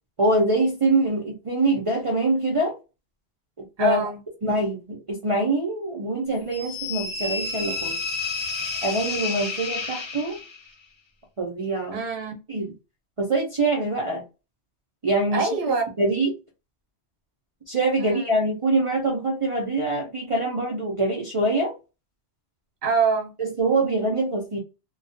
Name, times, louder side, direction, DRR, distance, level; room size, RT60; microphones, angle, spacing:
voice 1, 0.2-2.8 3.6-4.0 4.4-8.0 8.8-10.4 11.4-12.0 12.5-12.7 13.2-14.2 15.0-15.5 16.0-16.3 17.7-21.7 23.4-24.6, right 2 dB, 40° right, 0.5 m, -24 dB
voice 2, 3.8-4.2 11.9-12.4 15.3-15.8 18.0-18.4 22.8-23.3, right 5 dB, 60° right, 0.9 m, -24 dB
sound 1, 6.5-10.7, left 4 dB, 45° left, 0.4 m, -30 dB
2.3 x 2.2 x 2.6 m
omnidirectional pair, 1.2 m